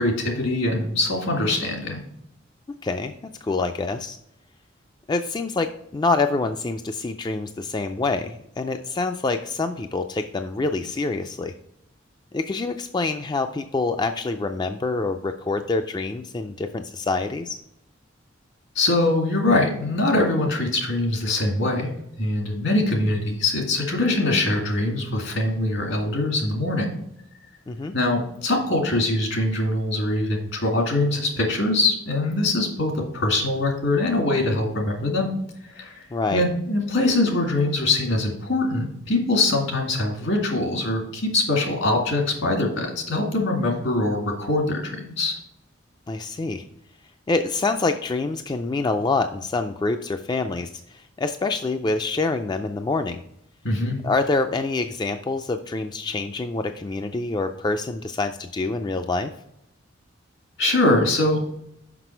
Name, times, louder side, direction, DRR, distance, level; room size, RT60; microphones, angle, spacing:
voice 1, 0.0-2.0 18.8-21.9 22.2-26.9 27.9-35.3 35.6-36.1 36.3-45.4 53.6-54.0 60.6-61.4, left 2 dB, 75° left, 0 dB, 2.1 m, -23 dB
voice 2, 2.8-3.1 3.4-4.2 5.1-11.5 12.3-17.6 27.7-27.9 36.1-36.4 46.1-46.6 47.3-53.2 54.0-59.3, left 3 dB, 20° left, 7 dB, 0.3 m, -26 dB
6.0 x 5.6 x 4.5 m, 0.76 s
head